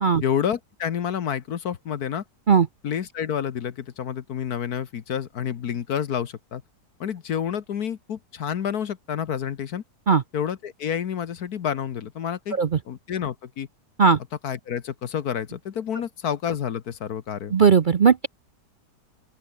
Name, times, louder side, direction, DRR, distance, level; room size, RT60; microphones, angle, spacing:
voice 1, 0.2-2.2 2.8-6.6 7.0-9.8 10.3-12.6 12.9-13.7 14.4-17.5, left 8 dB, 65° left, 1.6 m, -29 dB
voice 2, 17.5-18.3, right 6 dB, 55° right, 0.5 m, -17 dB
open air
omnidirectional pair, 1.8 m